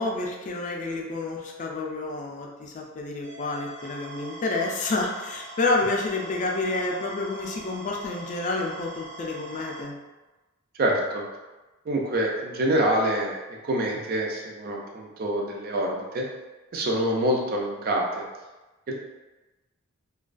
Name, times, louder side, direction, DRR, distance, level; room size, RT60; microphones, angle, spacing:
voice 1, 0.0-9.9, left 2 dB, 35° left, 0 dB, 0.3 m, -29 dB
sound 1, 3.2-9.8, right 2 dB, 80° right, 1.1 m, -42 dB
voice 2, 10.8-11.2 11.9-13.4 13.6-16.2 16.7-18.2 18.9-19.0, right 1 dB, 45° right, 0 dB, 0.4 m, -26 dB
2.3 x 2.2 x 2.4 m, 1.1 s
head